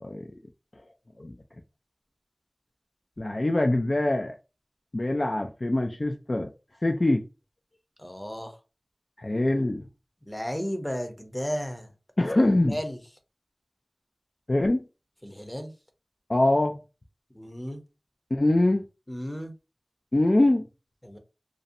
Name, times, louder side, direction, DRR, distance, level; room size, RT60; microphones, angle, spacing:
voice 1, 3.2-4.4 4.9-6.5 6.8-7.2 9.2-9.8 12.2-12.8 14.5-14.8 16.3-16.8 18.3-18.8 20.1-20.7, left 1 dB, 55° left, 0.3 m, -23 dB
voice 2, 8.0-8.6 10.3-11.9 12.7-13.0 15.2-15.7 17.3-17.8 19.1-19.5 21.0-21.2, equal, 15° left, 0.6 m, -34 dB
2.5 x 2.0 x 2.6 m
wide cardioid pair, 45°, 0 cm